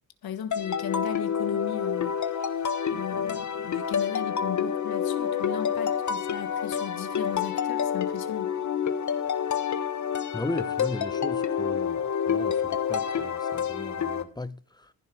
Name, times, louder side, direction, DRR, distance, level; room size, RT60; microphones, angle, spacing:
voice 1, 0.2-2.5 2.9-8.5, left 9 dB, 85° left, 1.4 m, -37 dB
sound 1, 0.5-14.2, left 8 dB, 50° left, 1.3 m, -28 dB
voice 2, 10.3-12.0 12.3-14.9, left 2 dB, 10° left, 0.9 m, -36 dB
15.0 x 6.5 x 6.1 m
cardioid pair, 100°, 36 cm